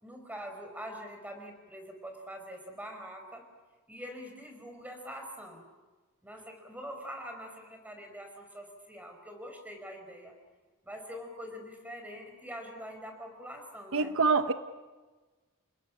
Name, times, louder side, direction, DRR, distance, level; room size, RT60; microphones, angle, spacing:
voice 1, 0.0-3.5 3.9-5.6 6.2-10.4 10.9-14.1, equal, 5° right, 4 dB, 5.1 m, -44 dB
voice 2, 13.9-14.5, right 4 dB, 65° right, 10 dB, 1.0 m, -25 dB
29.5 x 19.5 x 10.0 m, 1.3 s
head